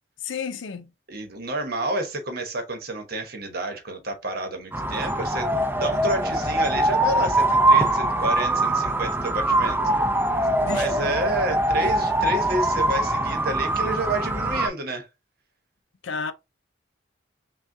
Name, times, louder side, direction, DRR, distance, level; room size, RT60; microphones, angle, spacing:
voice 1, 0.2-0.9 10.6-11.1 16.0-16.3, left 5 dB, 75° left, 0.5 m, -31 dB
voice 2, 1.1-9.8 10.7-15.1, right 2 dB, 50° right, 1.0 m, -30 dB
sound 1, 4.7-14.7, right 1 dB, 10° right, 0.6 m, -23 dB
6.1 x 2.3 x 2.6 m
head